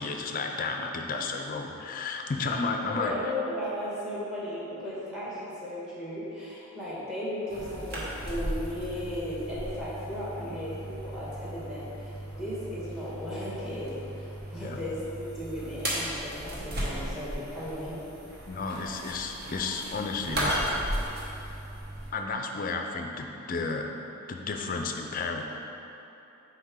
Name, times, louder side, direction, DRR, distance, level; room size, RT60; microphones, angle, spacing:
voice 1, 0.0-3.1 10.4-10.6 14.6-14.8 18.5-21.0 22.1-23.8 24.3-25.4, left 4 dB, 40° left, 3 dB, 0.4 m, -32 dB
voice 2, 2.9-18.0, left 1 dB, 5° right, -8 dB, 1.4 m, -36 dB
sound 1, 7.5-22.1, right 1 dB, 45° right, 1.0 m, -36 dB
6.5 x 4.7 x 3.7 m, 3.0 s
head